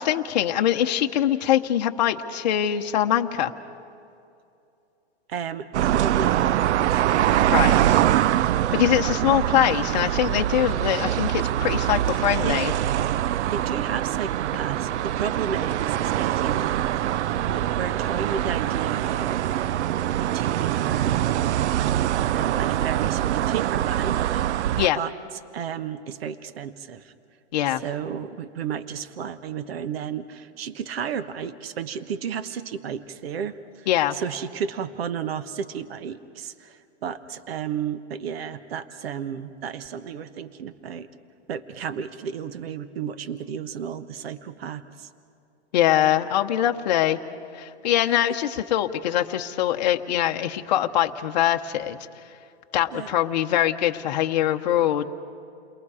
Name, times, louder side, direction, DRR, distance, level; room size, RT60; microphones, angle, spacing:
voice 1, 0.0-3.5 7.5-8.0 8.7-12.7 24.8-25.0 27.5-27.8 33.9-34.2 45.7-47.2 47.5-52.0 52.7-55.0, left 11 dB, 40° left, 4 dB, 0.9 m, -23 dB
voice 2, 5.3-6.6 6.9-7.1 12.4-12.6 13.5-19.5 20.3-21.4 22.3-25.1 25.5-27.1 27.7-41.1 41.5-45.1 48.1-48.2 52.9-53.1, right 7 dB, 60° right, 11 dB, 1.1 m, -33 dB
sound 1, 5.7-24.9, right 12 dB, 85° right, 0.5 m, -24 dB
30.0 x 22.5 x 4.9 m, 2.6 s
hypercardioid pair, 175°, 34 cm